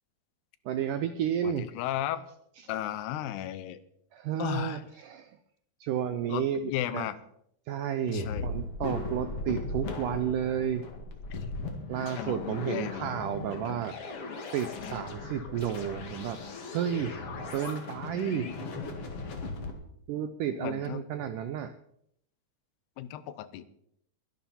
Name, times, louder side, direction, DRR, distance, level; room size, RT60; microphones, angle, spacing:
voice 1, 0.7-1.7 2.6-2.7 4.1-5.4 5.8-7.1 7.7-10.9 11.9-14.0 14.5-16.4 16.7-17.2 17.5-18.5 20.1-21.7, right 9 dB, 90° right, 10 dB, 1.8 m, -32 dB
voice 2, 1.4-2.2 2.7-3.8 4.4-4.8 6.3-7.2 8.1-8.5 11.3-11.4 12.2-13.1 14.8-15.0 20.6-21.0 23.0-23.6, left 12 dB, 90° left, 14 dB, 2.9 m, -34 dB
sound 1, 8.1-19.7, left 3 dB, 45° left, 2.4 m, -38 dB
22.5 x 11.0 x 4.3 m, 0.71 s
omnidirectional pair, 4.5 m